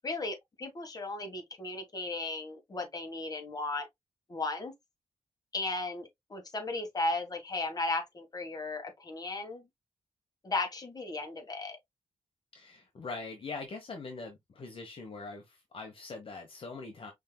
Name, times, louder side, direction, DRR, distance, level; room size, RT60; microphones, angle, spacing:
voice 1, 0.0-3.9 4.3-4.7 5.5-9.7 10.4-11.8, left 2 dB, 35° left, 1.7 m, -35 dB
voice 2, 12.5-17.1, left 3 dB, 50° left, 1.2 m, -42 dB
5.3 x 3.7 x 2.3 m
cardioid pair, 100°, 12 cm